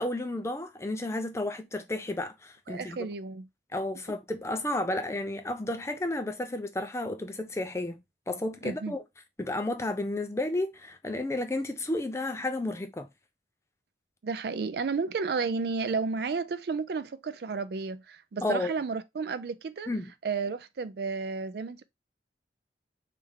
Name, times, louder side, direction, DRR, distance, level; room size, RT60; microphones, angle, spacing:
voice 1, 0.0-3.0 3.7-8.0 8.3-9.0 9.4-13.1 18.4-18.7 19.9-20.1, left 1 dB, 15° left, 0.4 m, -32 dB
voice 2, 2.7-3.5 8.6-8.9 14.2-19.9 20.2-21.8, right 4 dB, 60° right, 0.4 m, -32 dB
3.3 x 3.3 x 3.5 m
head